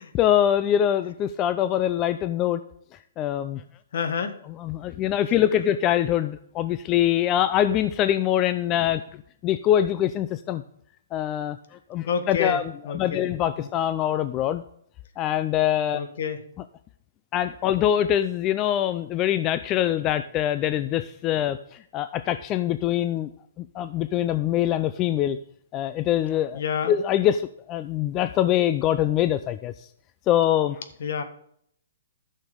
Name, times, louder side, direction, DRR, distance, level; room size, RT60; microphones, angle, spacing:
voice 1, 0.1-2.6 3.2-3.6 4.6-10.6 11.1-14.6 15.2-16.0 17.3-23.3 23.6-25.4 25.7-29.9 30.3-30.8, left 11 dB, 25° left, 12 dB, 0.4 m, -24 dB
voice 2, 3.9-4.4 12.0-12.6 12.8-13.3 13.6-13.7 15.9-16.4 26.5-26.9 31.0-31.2, left 6 dB, 60° left, 9 dB, 1.5 m, -28 dB
12.0 x 6.5 x 5.2 m, 0.68 s
hypercardioid pair, 155°, 0 cm